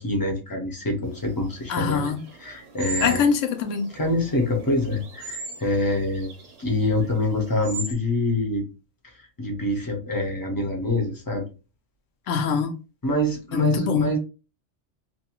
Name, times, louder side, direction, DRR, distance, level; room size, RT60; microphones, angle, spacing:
voice 1, 0.0-2.1 2.4-3.3 3.9-6.3 6.6-8.6 9.4-11.4 13.0-14.2, left 1 dB, 25° left, 0.5 m, -25 dB
sound 1, 1.1-7.9, right 3 dB, 60° right, 0.8 m, -39 dB
voice 2, 1.7-2.2 3.0-3.9 12.3-12.7 13.5-14.2, left 7 dB, 80° left, 0.9 m, -23 dB
2.6 x 2.3 x 2.8 m
omnidirectional pair, 1.3 m